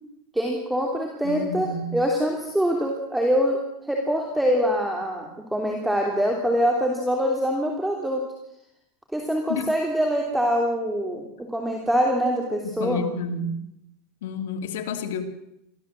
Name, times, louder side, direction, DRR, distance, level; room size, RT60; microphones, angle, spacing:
voice 1, 0.3-8.2 9.1-13.0, equal, 5° right, 0 dB, 3.2 m, -24 dB
voice 2, 1.2-2.0 9.5-9.6 12.6-13.6 14.2-15.2, left 4 dB, 85° left, 6 dB, 2.8 m, -30 dB
23.5 x 15.5 x 7.7 m, 0.80 s
supercardioid pair, 145°, 0 cm